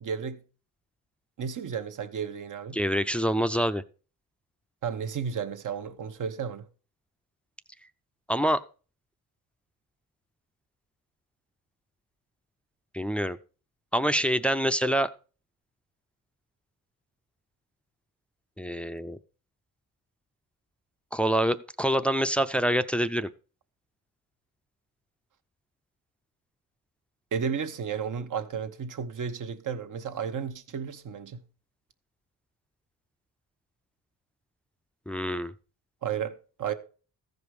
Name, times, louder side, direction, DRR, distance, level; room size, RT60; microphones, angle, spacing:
voice 1, 0.0-0.4 1.4-2.8 4.8-6.7 27.3-31.4 36.0-36.7, right 7 dB, 55° right, 1.1 m, -33 dB
voice 2, 2.7-3.8 8.3-8.6 12.9-13.4 13.9-15.1 18.6-19.2 21.1-23.3 35.1-35.5, equal, 5° left, 0.5 m, -26 dB
14.0 x 5.2 x 4.8 m
cardioid pair, 75°, 36 cm